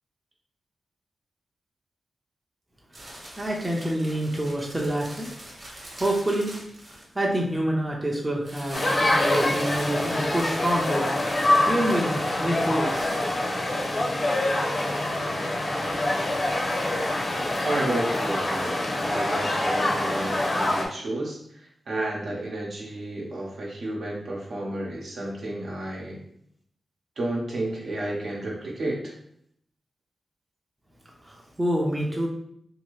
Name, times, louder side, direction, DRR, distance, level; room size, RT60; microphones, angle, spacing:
sound 1, 2.9-7.5 8.4-14.0, right 1 dB, 30° right, 1.0 m, -44 dB
voice 1, 3.4-5.3 5.9-6.5 6.9-11.1 11.7-13.2 31.2-32.3, right 1 dB, 15° right, -1 dB, 0.5 m, -27 dB
sound 2, 8.7-20.9, left 1 dB, 45° left, 0.6 m, -25 dB
voice 2, 17.6-18.7 19.0-26.2 27.2-29.1, right 1 dB, 65° right, -3 dB, 0.8 m, -31 dB
2.7 x 2.6 x 3.1 m, 0.71 s
wide cardioid pair, 95°, 0 cm